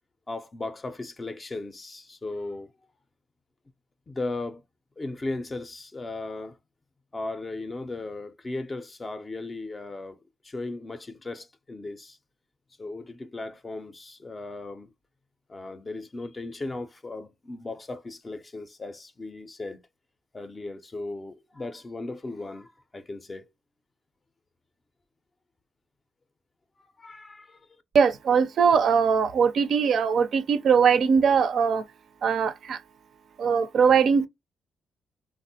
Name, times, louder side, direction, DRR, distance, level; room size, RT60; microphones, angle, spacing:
voice 1, 0.3-2.7 4.1-4.6 5.0-6.6 7.1-12.2 12.8-14.9 15.5-19.8 20.3-23.5 26.8-27.7, left 2 dB, 25° left, 0.4 m, -37 dB
voice 2, 27.9-31.8 32.2-32.8 33.4-34.3, right 6 dB, 60° right, 0.4 m, -21 dB
3.4 x 2.0 x 2.6 m
cardioid pair, 90°, 0 cm